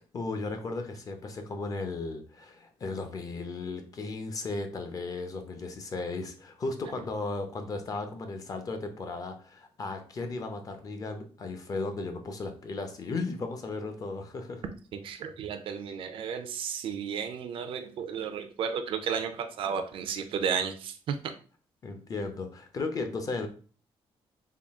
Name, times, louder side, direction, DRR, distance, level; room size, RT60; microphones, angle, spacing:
voice 1, 0.1-14.6 21.8-23.5, left 3 dB, 35° left, 6 dB, 0.6 m, -35 dB
voice 2, 15.0-21.2, right 7 dB, 60° right, 7 dB, 0.5 m, -33 dB
3.7 x 2.3 x 3.5 m, 0.39 s
cardioid pair, 140°, 10 cm